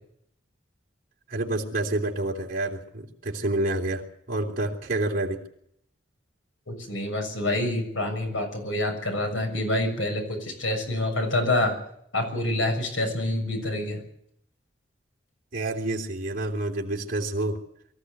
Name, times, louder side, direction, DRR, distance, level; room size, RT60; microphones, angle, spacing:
voice 1, 1.3-5.4 15.5-17.6, right 2 dB, 45° right, -1 dB, 3.4 m, -28 dB
voice 2, 6.7-11.8 12.1-14.0, left 1 dB, 85° left, 4 dB, 6.7 m, -27 dB
23.5 x 14.5 x 8.1 m, 0.73 s
head